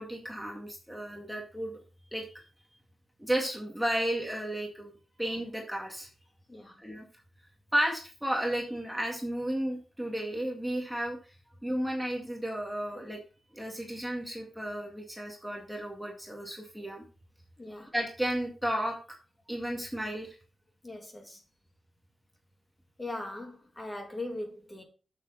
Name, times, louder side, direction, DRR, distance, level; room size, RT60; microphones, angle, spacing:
voice 1, 0.0-1.8 2.1-2.4 3.2-6.1 6.8-7.0 7.7-11.2 11.6-13.2 13.5-17.0 17.9-19.0 19.5-20.3, right 1 dB, 5° right, 2.0 m, -33 dB
voice 2, 17.6-17.9 20.8-21.4 23.0-24.8, left 2 dB, 20° left, 2.3 m, -40 dB
8.7 x 7.0 x 3.9 m
wide cardioid pair, 115°, 0 cm